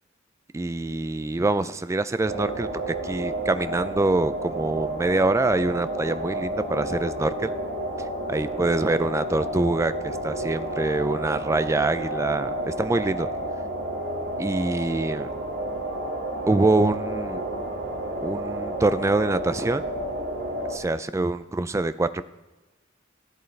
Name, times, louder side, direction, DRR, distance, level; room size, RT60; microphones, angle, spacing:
voice 1, 0.5-7.5 8.3-13.3 14.4-15.3 16.5-17.4 18.2-19.8 20.7-22.2, right 2 dB, 15° right, 13 dB, 0.3 m, -25 dB
sound 1, 2.3-20.8, right 1 dB, 60° right, 1.7 m, -31 dB
15.0 x 8.1 x 3.3 m, 1.2 s
head